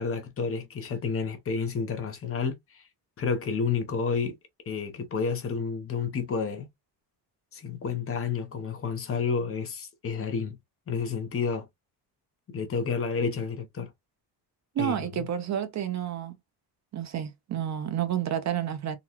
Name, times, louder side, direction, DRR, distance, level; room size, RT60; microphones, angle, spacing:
voice 1, 0.0-2.8 3.2-4.4 4.7-6.7 7.5-10.6 10.9-11.7 12.5-13.9 14.8-15.2, left 5 dB, 35° left, 0.8 m, -30 dB
voice 2, 14.8-16.3 16.9-19.0, right 10 dB, 45° right, 0.5 m, -30 dB
3.8 x 2.2 x 2.9 m
cardioid pair, 170°, 42 cm